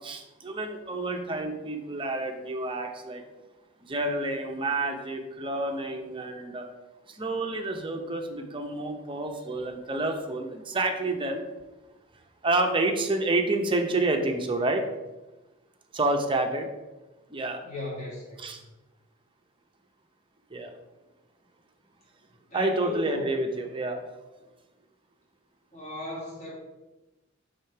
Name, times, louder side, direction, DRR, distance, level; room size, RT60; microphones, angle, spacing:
voice 1, 0.0-3.2 3.8-6.7 7.1-11.4 12.4-14.8 15.9-16.7 17.3-17.6 18.4-18.6 20.5-20.7 22.5-24.0, right 2 dB, 25° right, 4 dB, 0.6 m, -29 dB
voice 2, 17.6-18.5 22.5-23.3 25.7-26.5, left 2 dB, 35° left, -5 dB, 2.1 m, -36 dB
5.0 x 3.6 x 5.7 m, 1.1 s
head